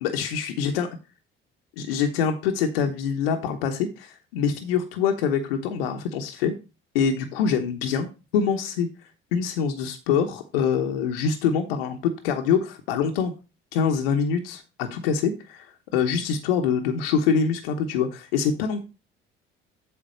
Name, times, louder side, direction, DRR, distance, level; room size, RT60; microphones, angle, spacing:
voice 1, 0.0-0.9 1.8-6.5 6.9-8.1 8.3-8.9 9.3-13.3 13.7-15.7 15.9-18.8, left 6 dB, 80° left, 5 dB, 1.0 m, -25 dB
7.9 x 3.8 x 6.3 m, 0.29 s
hypercardioid pair, 60°, 29 cm